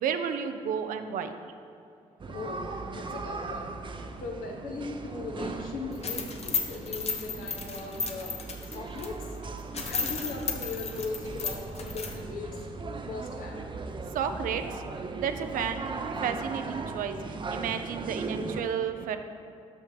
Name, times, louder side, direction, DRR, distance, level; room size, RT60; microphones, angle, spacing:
voice 1, 0.0-1.3 14.1-14.8 15.2-17.2 17.5-19.2, right 7 dB, 75° right, 8 dB, 0.5 m, -32 dB
sound 1, 2.2-18.6, right 3 dB, 35° right, 0.6 m, -38 dB
voice 2, 2.3-3.6 4.0-9.4 9.8-12.6 13.1-13.7, left 3 dB, 75° left, 0 dB, 1.0 m, -38 dB
sound 2, 5.9-9.1 9.4-9.5 9.7-12.1, left 5 dB, 45° left, 1.0 m, -33 dB
6.2 x 5.6 x 5.1 m, 2.5 s
supercardioid pair, 55°, 14 cm